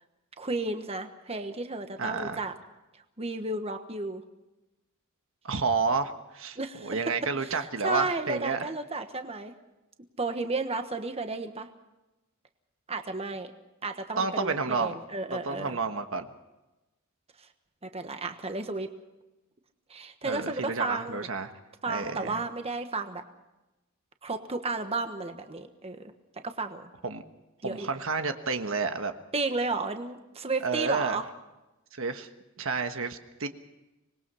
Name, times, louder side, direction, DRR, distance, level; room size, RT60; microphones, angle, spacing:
voice 1, 0.4-2.5 3.2-4.2 6.6-9.5 10.2-11.7 12.9-13.5 13.8-15.8 17.8-18.9 19.9-21.3 21.8-23.2 24.2-26.1 26.4-26.9 27.6-27.9 29.3-31.2, right 3 dB, 30° right, 7 dB, 1.3 m, -33 dB
voice 2, 2.0-2.4 5.4-8.6 14.2-15.0 15.3-16.3 20.2-21.5 21.9-22.4 27.0-27.2 27.6-29.1 30.6-31.2 31.9-32.3 32.6-33.5, right 4 dB, 65° right, 7 dB, 1.4 m, -30 dB
25.5 x 20.5 x 5.7 m, 1.0 s
head